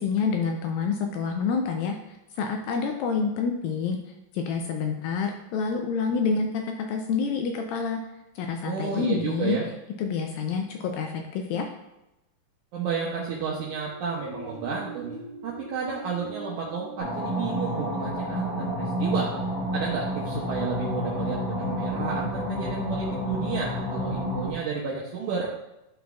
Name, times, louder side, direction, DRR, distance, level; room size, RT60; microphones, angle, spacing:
voice 1, 0.0-8.0 8.4-9.6 10.0-11.7, left 5 dB, 80° left, 3 dB, 2.1 m, -28 dB
voice 2, 8.6-9.7 12.7-19.3 19.7-25.5, right 5 dB, 80° right, -4 dB, 1.8 m, -32 dB
sound 1, 13.7-18.5, right 2 dB, 40° right, 1.1 m, -44 dB
sound 2, 17.0-24.5, equal, 60° left, 2.0 m, -29 dB
11.5 x 3.9 x 2.3 m, 0.92 s
omnidirectional pair, 4.4 m